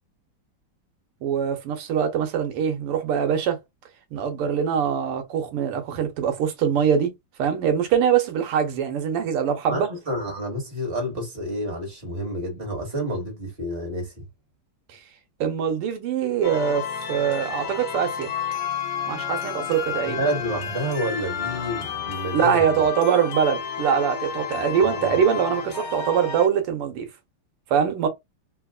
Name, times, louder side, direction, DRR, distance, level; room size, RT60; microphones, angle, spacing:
voice 1, 1.2-3.6 4.1-7.1 7.4-9.9 15.4-18.3 19.1-20.2 22.3-27.1 27.7-28.1, right 8 dB, 90° right, 1.8 m, -23 dB
voice 2, 9.7-14.3 20.0-22.8 24.8-25.2, equal, 25° right, 2.1 m, -29 dB
sound 1, 16.4-26.5, left 7 dB, 65° left, 1.5 m, -31 dB
3.9 x 2.9 x 2.3 m
omnidirectional pair, 2.4 m